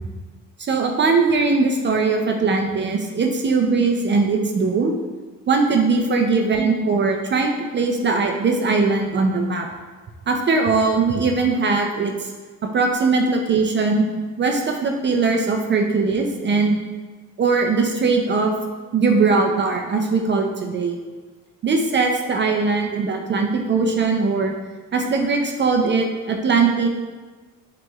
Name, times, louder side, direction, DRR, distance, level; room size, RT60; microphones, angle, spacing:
voice 1, 0.6-4.9 5.5-9.7 10.3-12.3 12.7-14.0 14.4-16.8 17.4-18.5 18.9-21.0 21.6-24.5 24.9-26.9, right 4 dB, 40° right, 2 dB, 0.4 m, -20 dB
5.9 x 3.0 x 2.3 m, 1.4 s
cardioid pair, 90°, 30 cm